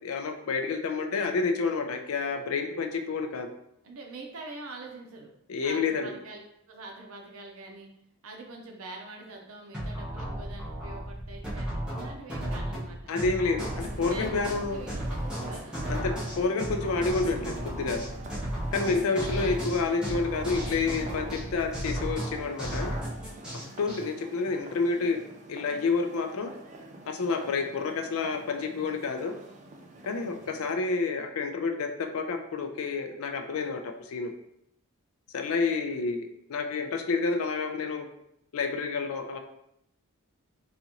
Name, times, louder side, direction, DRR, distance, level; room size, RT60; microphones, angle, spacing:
voice 1, 0.0-3.5 5.5-6.1 13.1-14.8 15.9-18.0 18.7-22.9 23.5-25.2 25.5-26.5 27.1-29.3 30.0-34.3 35.3-38.1 38.5-39.4, left 4 dB, 65° left, 6 dB, 0.4 m, -29 dB
voice 2, 3.8-5.3 5.6-6.4 6.7-7.9 8.2-13.1 13.7-16.0 18.7-19.1 35.7-35.9, right 2 dB, 70° right, 1 dB, 0.7 m, -45 dB
sound 1, 9.7-24.0, right 1 dB, 5° right, 0.8 m, -34 dB
sound 2, 13.6-30.7, right 2 dB, 30° right, 0.3 m, -47 dB
3.8 x 2.5 x 2.9 m, 0.78 s
head